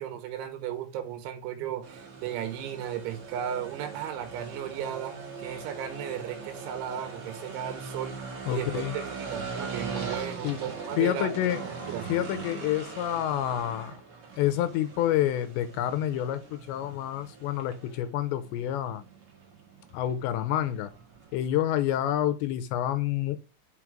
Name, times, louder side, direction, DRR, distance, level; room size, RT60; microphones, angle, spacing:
voice 1, 0.0-8.2 8.5-11.3 11.9-12.1, right 9 dB, 90° right, 3.5 m, -35 dB
sound 1, 1.8-21.7, right 5 dB, 55° right, 1.5 m, -41 dB
voice 2, 8.5-9.0 10.4-10.6 11.0-11.6 12.1-14.0 14.4-19.0 19.9-20.9 21.3-23.4, left 12 dB, 85° left, 2.7 m, -28 dB
6.0 x 5.7 x 4.9 m
omnidirectional pair, 5.3 m